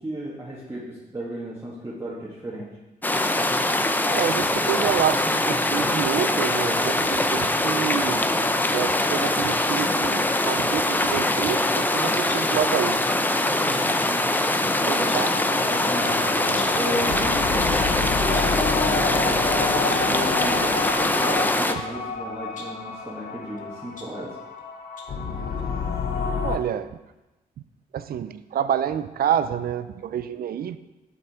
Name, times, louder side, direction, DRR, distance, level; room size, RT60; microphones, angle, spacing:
voice 1, 0.0-2.7 13.4-15.2 15.7-16.5 16.8-20.8 21.1-24.4, right 1 dB, 15° right, -7 dB, 2.0 m, -34 dB
sound 1, 3.0-21.7, left 1 dB, 10° left, 0.5 m, -23 dB
voice 2, 4.1-8.2 8.7-13.0 14.8-15.3 26.4-26.9 27.9-30.8, right 9 dB, 70° right, 13 dB, 0.5 m, -28 dB
sound 2, 10.8-11.0 12.0-12.6 13.7-13.9 14.8-15.4 16.6-16.9 17.4-17.9 18.3-18.6 19.1-19.3 19.8-20.2 20.8-21.1 21.7-22.0 22.5-22.8 23.6-24.6 25.0-25.2 25.6-25.7, left 3 dB, 50° left, 1.4 m, -43 dB
sound 3, 14.4-26.6, left 5 dB, 70° left, 0.9 m, -29 dB
7.8 x 6.0 x 4.4 m, 1.0 s
cardioid pair, 75°, 16 cm